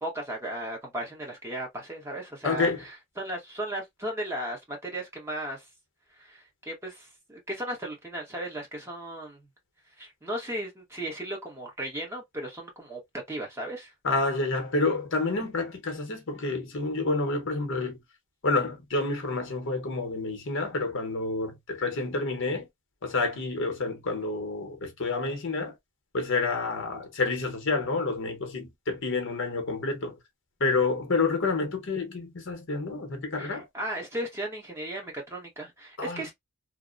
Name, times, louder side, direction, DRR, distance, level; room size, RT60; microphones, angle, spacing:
voice 1, 0.0-5.7 6.1-9.5 10.0-13.0 13.3-13.9 33.4-36.3, right 1 dB, 15° right, 0.9 m, -36 dB
voice 2, 2.4-2.8 14.0-18.0 18.4-22.7 23.0-25.7 26.1-30.2 30.6-33.7 36.0-36.2, left 3 dB, 60° left, 0.8 m, -29 dB
2.8 x 2.0 x 2.3 m
head